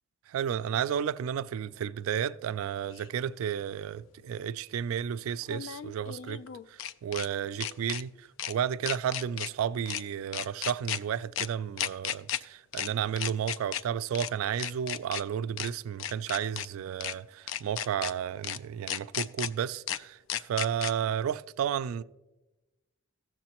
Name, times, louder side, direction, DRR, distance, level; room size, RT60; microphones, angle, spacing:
voice 1, 0.3-6.4 7.0-22.0, right 8 dB, 85° right, 0.3 m, -32 dB
sound 1, 3.0-3.1 5.4-7.3 7.6-8.0 8.4-8.5 8.9-9.5 9.9-10.0 10.3-11.0 11.4-11.5 11.8-12.4 12.7-12.9 13.2-13.8 14.1-14.3 14.6-15.2 15.6-15.7 16.0-16.7 17.0-17.1 17.5-18.1 18.4-18.6 18.9-19.5 19.9-20.0 20.3-20.9, left 10 dB, 70° left, 0.3 m, -34 dB
14.5 x 7.0 x 2.9 m
head